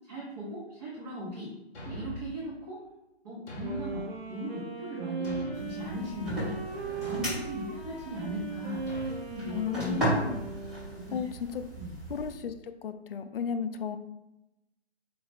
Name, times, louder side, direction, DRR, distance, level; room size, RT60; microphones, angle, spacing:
voice 1, 0.1-1.5 1.8-2.8 3.2-6.6 7.0-8.8 9.3-10.1 11.1-11.2 11.8-11.9, equal, 35° right, -6 dB, 0.9 m, -38 dB
Thump thud, 1.7-2.4 3.5-4.1 5.2-5.8 7.0-7.4 8.9-9.2, equal, 15° left, 0.6 m, -41 dB
Wind instrument woodwind instrument, 3.6-11.2, right 4 dB, 65° right, 1.0 m, -39 dB
sound 1, 5.5-12.3, equal, ahead, 1.3 m, -36 dB
voice 2, 9.5-10.4 11.1-11.3 11.5-11.6 12.1-14.0, left 6 dB, 60° left, 9 dB, 0.4 m, -34 dB
4.2 x 2.4 x 3.4 m, 0.92 s
hypercardioid pair, 145°, 33 cm